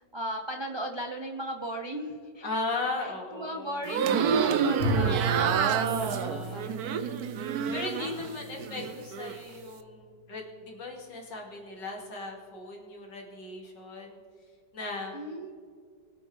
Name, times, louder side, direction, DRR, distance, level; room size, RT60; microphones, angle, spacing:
voice 1, 0.0-2.5 3.0-7.4 8.0-8.8 15.1-15.5, equal, 25° right, 2 dB, 0.6 m, -38 dB
voice 2, 2.4-3.9 6.0-6.8 7.7-14.2 14.7-15.2, left 3 dB, 90° left, -1 dB, 3.1 m, -37 dB
sound 1, 3.8-8.3 8.6-9.4, right 7 dB, 65° right, 1.2 m, -28 dB
Bowed string instrument, 4.8-9.6, right 1 dB, 40° left, 3.0 m, -34 dB
22.5 x 8.4 x 3.4 m, 2.1 s
omnidirectional pair, 1.9 m